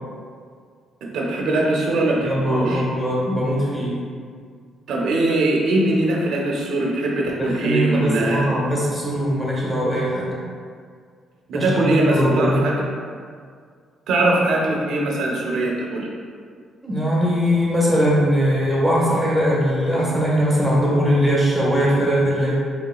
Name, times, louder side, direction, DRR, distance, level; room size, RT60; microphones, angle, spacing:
voice 1, 1.0-2.9 4.9-8.4 11.5-12.8 14.1-16.1, right 2 dB, 80° right, -1 dB, 0.5 m, -21 dB
voice 2, 2.2-4.0 7.4-10.3 11.5-12.6 16.8-22.5, equal, ahead, -6 dB, 1.2 m, -20 dB
3.8 x 3.4 x 2.3 m, 2.1 s
cardioid pair, 90°, 0 cm